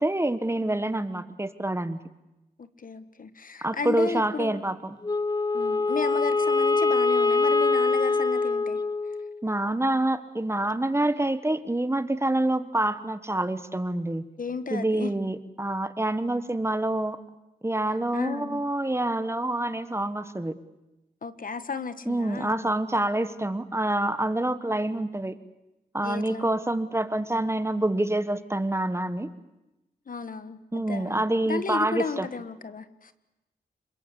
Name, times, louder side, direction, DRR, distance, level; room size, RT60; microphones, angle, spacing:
voice 1, 0.0-2.0 3.6-5.0 9.4-14.2 14.7-17.2 17.6-20.5 22.1-25.4 25.9-29.3 30.7-32.3, right 1 dB, 15° right, 12 dB, 1.4 m, -27 dB
voice 2, 2.6-4.6 5.5-8.8 14.4-15.1 18.1-18.6 21.2-22.6 26.0-26.5 30.1-33.1, left 5 dB, 55° left, 12 dB, 1.5 m, -34 dB
Wind instrument woodwind instrument, 5.0-9.5, left 3 dB, 25° left, 0.8 m, -24 dB
27.0 x 22.0 x 8.5 m, 0.95 s
wide cardioid pair, 75°, 17 cm